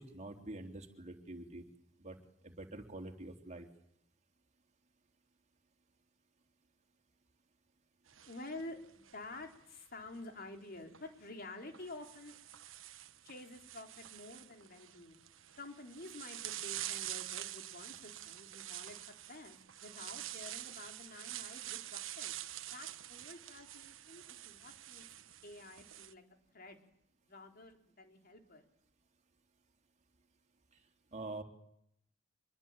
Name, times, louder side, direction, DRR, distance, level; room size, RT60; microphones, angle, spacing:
voice 1, 0.0-1.6 2.0-2.2 2.4-3.7 31.1-31.4, right 2 dB, 35° right, 3 dB, 3.6 m, -46 dB
sound 1, 8.1-9.6 10.8-11.0 11.7-26.1, right 13 dB, 75° right, 1.3 m, -47 dB
voice 2, 8.3-12.4 13.2-15.2 15.6-19.0 19.3-22.4 22.6-25.1 25.4-26.2 26.5-26.8 27.2-28.6, left 2 dB, 45° left, 4 dB, 4.1 m, -50 dB
25.5 x 22.0 x 9.1 m, 0.73 s
head